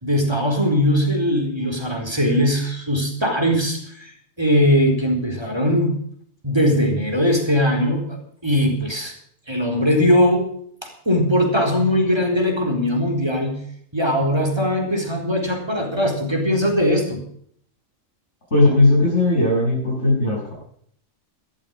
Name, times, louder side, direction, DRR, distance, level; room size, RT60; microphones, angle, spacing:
voice 1, 0.0-4.1 4.4-6.0 6.4-8.2 8.4-9.1 9.5-10.5 10.8-13.6 13.9-17.2, equal, 20° right, 2 dB, 4.1 m, -20 dB
voice 2, 18.5-20.5, left 2 dB, 65° left, -9 dB, 8.1 m, -17 dB
13.5 x 13.0 x 5.4 m, 0.63 s
omnidirectional pair, 1.3 m